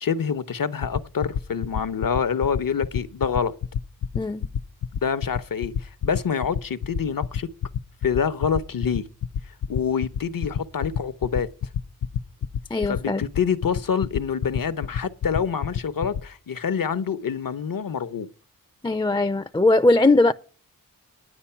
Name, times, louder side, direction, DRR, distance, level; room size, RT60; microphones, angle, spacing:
voice 1, 0.0-3.5 5.0-7.5 8.0-9.1 9.7-11.5 12.9-18.3, left 6 dB, 75° left, 0.9 m, -26 dB
sound 1, 0.8-16.2, left 8 dB, 90° left, 0.6 m, -26 dB
voice 2, 4.2-4.5 12.7-13.3 18.8-20.3, left 2 dB, 15° left, 0.4 m, -20 dB
9.8 x 9.8 x 5.7 m
wide cardioid pair, 70°, 34 cm